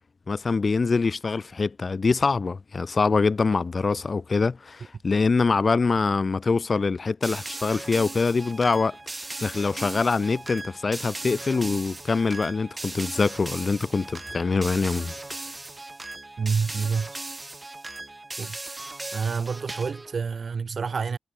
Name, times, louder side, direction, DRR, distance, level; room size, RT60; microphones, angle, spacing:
voice 1, 0.3-9.0 9.4-15.1, left 4 dB, 45° left, 0.9 m, -24 dB
sound 1, 7.2-20.1, right 2 dB, 25° right, 2.8 m, -38 dB
voice 2, 16.4-17.2 18.4-18.6 19.1-21.2, right 5 dB, 60° right, 1.8 m, -28 dB
cardioid pair, 65°, 0 cm